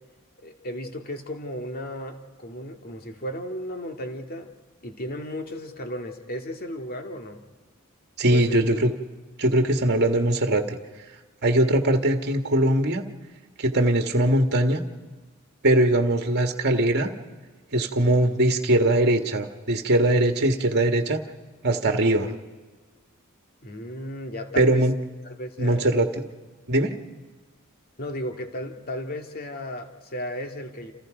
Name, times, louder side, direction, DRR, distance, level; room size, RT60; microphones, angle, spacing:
voice 1, 0.4-4.5 4.8-7.5 8.3-8.6 23.6-24.8 25.3-25.9 28.0-30.9, equal, 45° left, 4 dB, 2.3 m, -34 dB
voice 2, 8.2-8.9 9.4-10.8 11.4-13.0 13.6-14.8 15.6-17.1 17.7-21.2 21.6-22.3 24.6-24.9 25.6-26.1 26.7-26.9, right 1 dB, 50° right, 5 dB, 1.8 m, -21 dB
29.0 x 28.5 x 5.2 m, 1.3 s
head